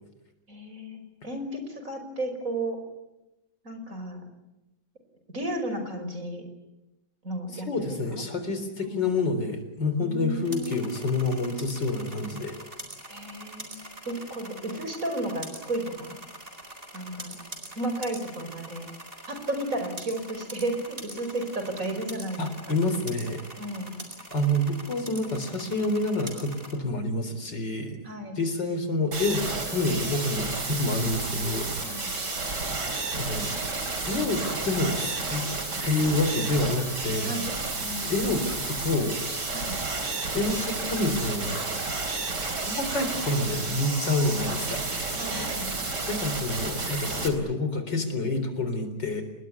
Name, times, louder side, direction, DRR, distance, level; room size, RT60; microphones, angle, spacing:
voice 1, 0.5-2.8 3.6-4.3 5.3-6.4 7.2-8.2 8.8-9.1 10.0-10.9 13.1-13.7 14.1-16.2 16.9-17.4 17.8-18.9 19.3-22.4 22.7-22.8 23.6-24.0 28.0-28.4 31.8-32.1 37.2-37.5 37.8-38.3 39.5-39.8 45.2-45.7, right 1 dB, 45° right, 7 dB, 5.8 m, -33 dB
voice 2, 7.5-12.6 22.4-23.4 24.3-28.0 28.4-31.7 32.8-33.5 34.1-35.5 35.8-37.3 38.0-39.2 40.3-41.6 42.5-44.8 45.8-49.2, left 2 dB, 85° left, 9 dB, 4.6 m, -28 dB
sound 1, 10.4-26.7, right 1 dB, 30° right, 5.1 m, -43 dB
sound 2, 29.1-47.3, right 3 dB, 70° right, 4.6 m, -31 dB
29.0 x 21.0 x 9.7 m, 0.94 s
omnidirectional pair, 1.9 m